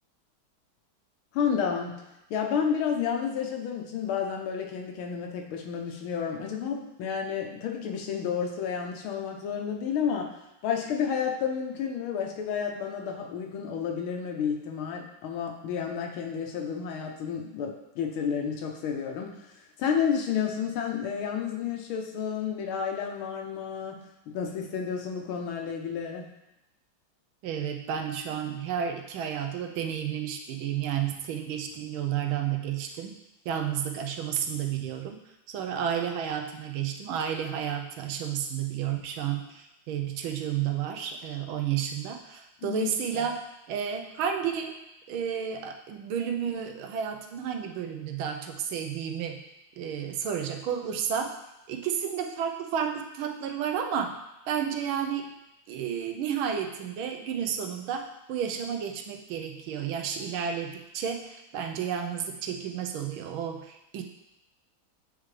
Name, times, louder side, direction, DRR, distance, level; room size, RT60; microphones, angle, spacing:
voice 1, 1.3-2.0 2.3-10.3 10.6-19.5 19.8-24.0 24.3-26.3 42.6-42.9 43.1-43.3, left 7 dB, 85° left, 2 dB, 1.7 m, -31 dB
voice 2, 27.4-33.2 33.4-35.2 35.5-44.8 45.1-49.4 49.8-51.3 51.7-54.2 54.5-55.3 55.7-64.0, right 8 dB, 85° right, 4 dB, 1.5 m, -31 dB
8.5 x 3.7 x 3.2 m, 0.89 s
omnidirectional pair, 2.2 m